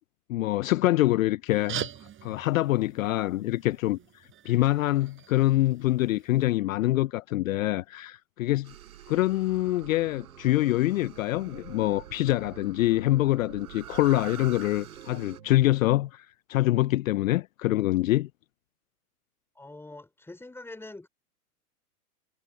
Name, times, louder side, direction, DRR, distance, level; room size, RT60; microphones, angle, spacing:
voice 1, 0.3-1.9 2.2-8.7 9.1-18.3, left 16 dB, 60° left, 0.5 m, -25 dB
sound 1, 1.5-6.5, right 10 dB, 25° right, 6.2 m, -42 dB
sound 2, 8.6-15.4, right 11 dB, 65° right, 6.4 m, -46 dB
sound 3, 9.8-16.1, right 7 dB, 80° right, 7.2 m, -52 dB
voice 2, 19.6-21.1, left 2 dB, 5° left, 3.8 m, -44 dB
hypercardioid pair, 110°, 47 cm